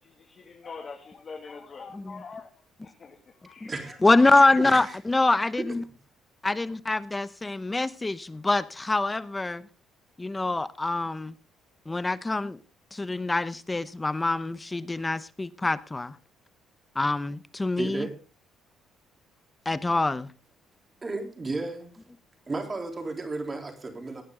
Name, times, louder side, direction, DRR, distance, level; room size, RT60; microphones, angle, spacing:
voice 1, 0.0-4.0, left 4 dB, 40° left, 2.5 m, -44 dB
voice 2, 4.0-5.8 6.4-9.6 10.2-11.4 11.9-12.6 12.9-16.1 17.0-18.1 19.7-20.3, left 2 dB, 15° left, 0.9 m, -25 dB
voice 3, 4.6-5.0 5.6-5.7 17.8-18.1 21.0-22.0 22.5-24.2, right 3 dB, 25° right, 3.7 m, -33 dB
18.5 x 9.5 x 3.9 m
cardioid pair, 95°, 0 cm